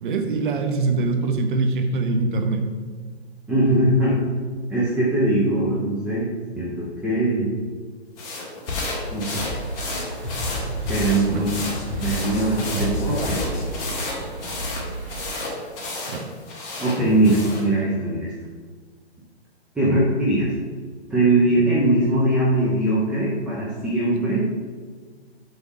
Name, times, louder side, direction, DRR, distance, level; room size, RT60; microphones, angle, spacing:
voice 1, 0.0-2.7 11.3-11.5 12.7-12.8 16.1-16.3 19.8-20.0, right 3 dB, 50° right, 5 dB, 1.1 m, -23 dB
voice 2, 3.5-4.2 4.7-7.5 9.1-9.4 10.9-11.5 12.0-13.5 16.8-18.3 19.7-20.5 21.1-24.5, right 1 dB, 5° right, -7 dB, 0.6 m, -21 dB
sound 1, 8.2-17.7, left 2 dB, 25° left, 1.7 m, -32 dB
sound 2, 8.7-14.7, left 1 dB, 50° left, 2.0 m, -31 dB
sound 3, 9.5-15.4, right 2 dB, 70° right, 1.9 m, -36 dB
8.0 x 3.5 x 5.9 m, 1.5 s
hypercardioid pair, 145°, 33 cm